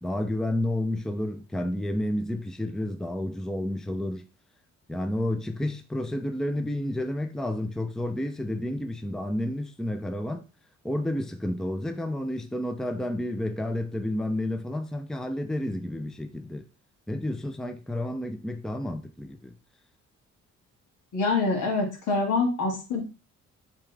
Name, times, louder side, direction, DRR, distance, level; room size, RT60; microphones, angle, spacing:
voice 1, 0.0-4.2 4.9-10.5 10.8-16.7 17.1-19.5, left 1 dB, ahead, 0.6 m, -30 dB
voice 2, 21.1-23.0, left 3 dB, 80° left, 2.4 m, -25 dB
7.3 x 3.7 x 3.5 m
cardioid pair, 90°, 30 cm